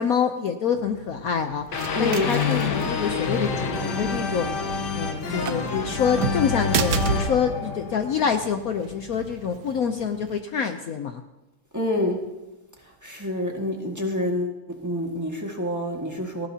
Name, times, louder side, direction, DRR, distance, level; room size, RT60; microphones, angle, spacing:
voice 1, 0.0-1.7 2.0-4.5 4.9-11.2, left 7 dB, 75° left, 7 dB, 0.8 m, -26 dB
sound 1, 0.8-10.4, right 6 dB, 60° right, 1.1 m, -33 dB
sound 2, 1.7-8.7, left 5 dB, 60° left, 1.5 m, -28 dB
voice 2, 1.9-2.3 11.7-12.2 13.0-16.5, left 1 dB, 10° right, 0 dB, 1.5 m, -27 dB
19.0 x 16.5 x 2.8 m, 1.1 s
omnidirectional pair, 2.3 m